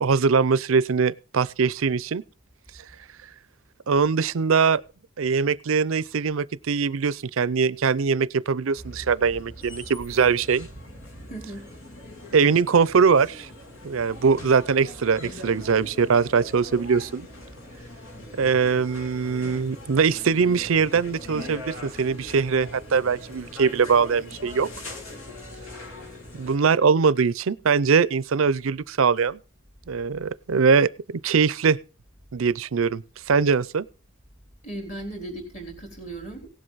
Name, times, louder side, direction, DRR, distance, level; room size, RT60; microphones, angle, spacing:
voice 1, 0.0-2.2 3.9-4.8 5.2-10.7 12.3-13.5 13.8-17.3 18.4-24.7 26.3-29.4 29.9-30.9 31.2-31.8 32.3-33.0 33.3-33.8, right 5 dB, 75° right, 0.5 m, -22 dB
sound 1, 8.7-26.6, left 1 dB, 80° left, 2.8 m, -41 dB
voice 2, 11.3-11.6 34.6-36.5, right 2 dB, 35° left, 4.0 m, -36 dB
17.5 x 7.8 x 4.0 m
head